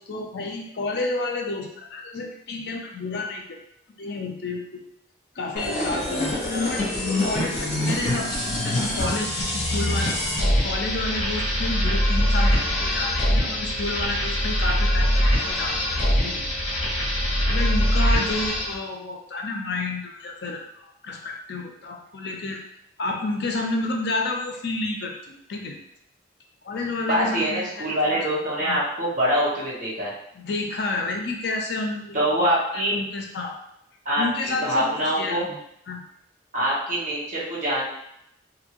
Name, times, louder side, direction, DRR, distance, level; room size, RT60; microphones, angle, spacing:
voice 1, 0.0-3.6 4.0-4.8 5.4-10.2 10.6-15.8 16.2-16.4 17.5-20.6 21.0-22.6 23.0-25.1 25.5-25.8 26.6-28.2 28.6-28.8 30.3-32.3 32.7-33.6 34.2-35.6 35.9-36.0, left 2 dB, 55° left, 2 dB, 0.5 m, -30 dB
sound 1, 5.6-18.8, left 1 dB, 35° left, 1.0 m, -23 dB
voice 2, 27.0-30.1 32.1-33.0 34.0-35.5 36.5-37.8, equal, 40° right, -8 dB, 1.1 m, -24 dB
2.6 x 2.6 x 2.9 m, 0.78 s
head